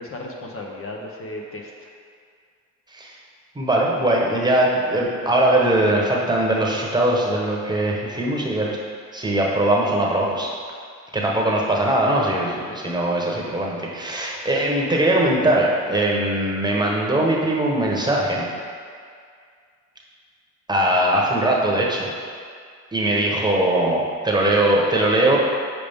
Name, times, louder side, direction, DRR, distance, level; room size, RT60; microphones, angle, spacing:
voice 1, 0.0-1.9 12.7-12.9, left 1 dB, 45° left, 0 dB, 0.8 m, -35 dB
voice 2, 3.5-8.8 9.1-10.5 11.1-18.5 20.7-22.1 22.9-25.4, right 1 dB, 15° right, -3 dB, 1.1 m, -21 dB
6.8 x 4.9 x 3.6 m, 2.2 s
cardioid pair, 90°, 30 cm